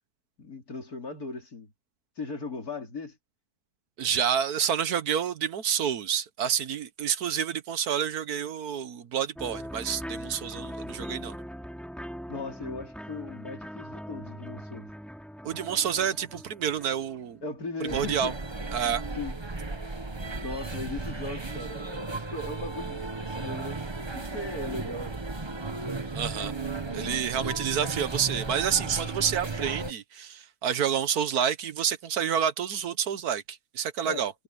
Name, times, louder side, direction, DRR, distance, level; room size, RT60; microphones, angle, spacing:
voice 1, 0.4-1.7 2.2-3.2 12.3-14.9 17.4-18.4 18.8-19.6 20.4-23.8 24.1-25.2 34.0-34.3, left 3 dB, 70° left, 4.0 m, -38 dB
voice 2, 4.0-11.4 15.4-17.4 17.8-18.3 18.7-19.0 26.1-26.5 26.9-34.3, right 8 dB, 75° right, 1.6 m, -28 dB
sound 1, 9.4-17.7, equal, ahead, 3.7 m, -41 dB
sound 2, 17.9-29.9, right 3 dB, 20° right, 1.0 m, -35 dB
omnidirectional pair, 1.6 m